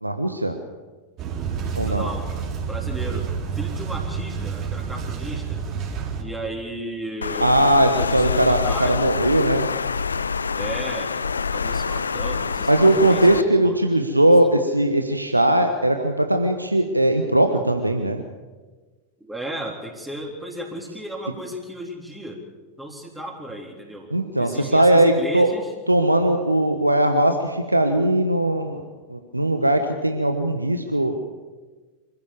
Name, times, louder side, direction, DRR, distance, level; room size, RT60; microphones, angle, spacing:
voice 1, 0.0-0.6 1.8-2.1 7.4-9.7 12.7-18.2 24.1-25.5 25.9-28.8 29.1-31.1, right 1 dB, 85° right, 6 dB, 1.2 m, -19 dB
sound 1, 1.2-6.2, right 6 dB, 35° right, 4.3 m, -29 dB
voice 2, 1.9-2.3 2.7-3.3 3.5-5.6 6.2-9.0 10.5-11.2 11.5-13.8 19.2-22.4 22.8-25.7, right 1 dB, 5° right, -2 dB, 3.7 m, -35 dB
Water, 7.2-13.4, left 5 dB, 75° left, 0.6 m, -26 dB
26.0 x 15.5 x 7.2 m, 1.3 s
figure-of-eight pair, 90°, 0 cm